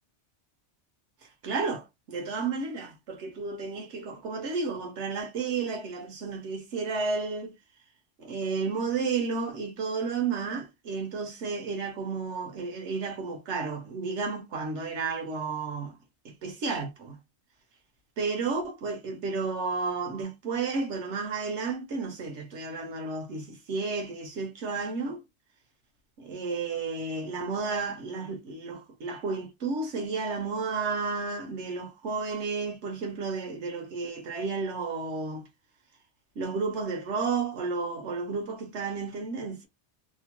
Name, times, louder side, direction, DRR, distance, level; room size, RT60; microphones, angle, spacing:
voice 1, 1.4-7.5 8.2-16.0 16.2-17.2 18.2-25.2 26.2-35.5 36.4-39.7, right 4 dB, 85° right, 1.2 m, -32 dB
2.9 x 2.1 x 2.9 m
omnidirectional pair, 1.1 m